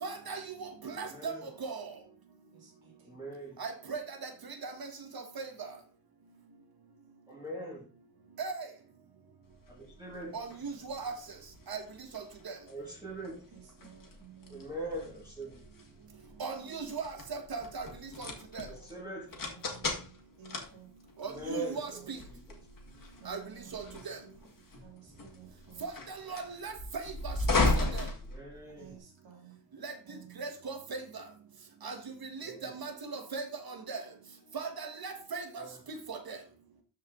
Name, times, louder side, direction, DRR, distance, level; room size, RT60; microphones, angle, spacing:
voice 1, 0.0-1.3 1.6-1.8 3.6-4.0 4.6-4.7 5.4-5.5 8.4-8.6 10.3-11.1 11.7-11.8 12.1-12.2 16.4-17.9 18.2-18.3 18.5-18.7 21.2-21.9 23.3-23.4 23.7-24.2 25.8-25.9 26.3-26.7 27.2-27.3 27.8-28.0 29.8-29.9 30.4-30.8 31.8-32.0 32.4-33.4 33.9-34.0 34.5-35.6 36.1-36.4, right 4 dB, 50° right, 1.6 m, -38 dB
voice 2, 1.0-1.5 3.0-3.6 7.3-7.8 9.7-10.4 12.7-13.4 14.5-15.6 18.6-19.3 21.2-22.6 28.3-29.0 32.4-32.7 35.6-35.8, right 2 dB, 10° right, 2.2 m, -42 dB
voice 3, 2.5-2.9 12.8-12.9 13.5-14.6 19.3-20.9 21.5-21.6 21.9-22.1 23.2-24.4 24.8-25.9 28.8-29.6 30.1-30.4, right 9 dB, 75° right, 2.7 m, -54 dB
sound 1, 9.6-29.0, left 2 dB, 45° left, 2.1 m, -37 dB
13.0 x 4.9 x 3.8 m
wide cardioid pair, 175°, 45 cm